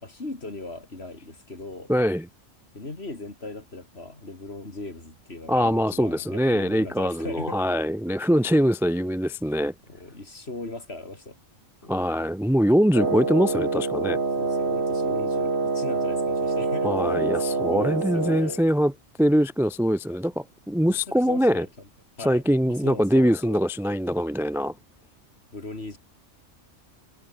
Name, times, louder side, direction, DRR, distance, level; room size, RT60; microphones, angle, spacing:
voice 1, 0.0-1.9 2.7-7.6 9.9-11.4 11.8-12.1 14.4-18.6 21.1-21.9 22.2-22.4 22.8-23.6 25.5-26.0, left 2 dB, 55° left, 4.1 m, -38 dB
voice 2, 1.9-2.3 5.5-9.7 11.9-14.2 16.8-18.9 19.2-21.7 22.2-24.7, equal, ahead, 0.6 m, -23 dB
Wind instrument woodwind instrument, 12.9-18.6, right 3 dB, 55° right, 2.8 m, -26 dB
omnidirectional pair, 1.3 m